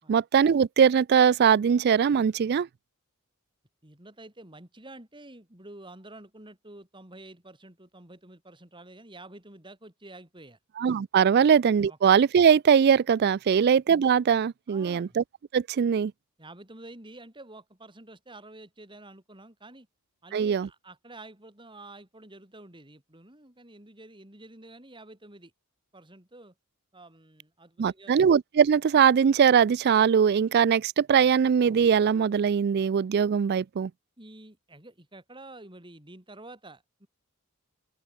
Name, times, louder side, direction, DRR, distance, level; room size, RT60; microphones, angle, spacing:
voice 1, 0.1-2.7 10.8-15.2 15.5-16.1 20.3-20.7 27.8-33.9, right 7 dB, 45° right, 0.3 m, -21 dB
voice 2, 3.8-10.6 11.4-11.5 11.9-12.0 13.5-13.6 14.7-15.2 16.4-19.9 20.2-25.5 25.9-26.5 26.9-28.2 34.2-37.1, right 2 dB, 20° right, 3.9 m, -49 dB
open air
head